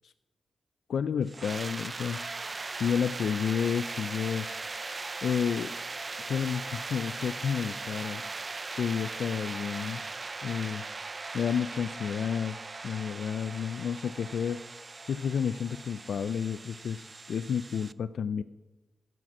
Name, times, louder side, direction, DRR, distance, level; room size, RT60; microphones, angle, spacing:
voice 1, 0.9-2.2 2.8-4.5 5.2-5.8 6.2-8.2 8.8-10.0 10.4-10.8 11.3-12.6 12.8-14.6 15.1-18.4, left 7 dB, 80° left, 13 dB, 0.3 m, -30 dB
sound 1, 1.3-17.9, right 3 dB, 40° right, 0.4 m, -39 dB
15.5 x 6.1 x 6.1 m, 1.1 s
cardioid pair, 65°, 0 cm